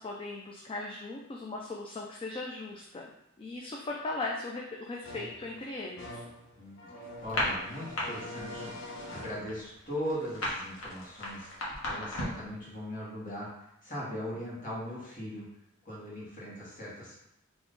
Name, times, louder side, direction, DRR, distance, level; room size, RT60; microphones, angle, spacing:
voice 1, 0.0-3.1 3.4-6.2, left 2 dB, 25° left, -1 dB, 0.4 m, -38 dB
sound 1, 5.0-11.6, left 1 dB, 65° left, 0.8 m, -46 dB
voice 2, 6.6-8.7 9.1-11.5 11.8-13.5 13.8-15.4 15.8-17.1, equal, 40° left, -6 dB, 1.6 m, -39 dB
sound 2, 7.2-8.0 8.4-8.7 8.9-12.5, left 1 dB, 80° left, 1.2 m, -33 dB
3.6 x 3.0 x 3.9 m, 0.81 s
head